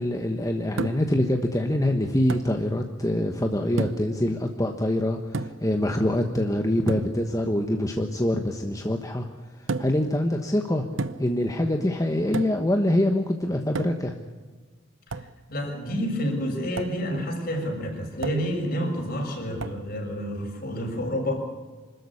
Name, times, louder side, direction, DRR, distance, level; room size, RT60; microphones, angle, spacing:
voice 1, 0.0-9.2 9.8-10.8 11.2-14.1, left 1 dB, 15° left, 4 dB, 1.3 m, -25 dB
sound 1, 0.8-1.2 2.3-2.6 3.8-4.2 5.3-5.7 6.9-7.2 9.7-10.1 11.0-11.4 12.3-12.7 13.8-14.2 15.1-15.4 16.8-17.0 18.2-18.6 19.6-19.9, right 3 dB, 90° right, 0.8 m, -32 dB
voice 2, 15.1-21.3, equal, 50° left, 1 dB, 6.4 m, -29 dB
26.0 x 13.5 x 9.9 m, 1.4 s
head